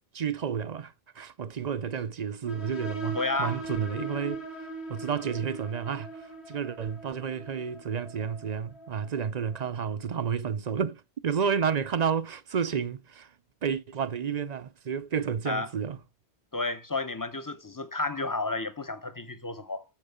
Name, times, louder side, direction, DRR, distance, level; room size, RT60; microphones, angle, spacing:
voice 1, 0.1-4.4 4.9-6.1 6.5-13.3 13.6-16.0, right 7 dB, 45° right, 0.6 m, -31 dB
sound 1, 2.5-9.8, right 3 dB, 75° left, 2.2 m, -40 dB
voice 2, 3.1-3.6 15.5-15.7 16.5-19.8, left 3 dB, 20° left, 0.7 m, -31 dB
8.6 x 7.4 x 5.5 m
omnidirectional pair, 1.1 m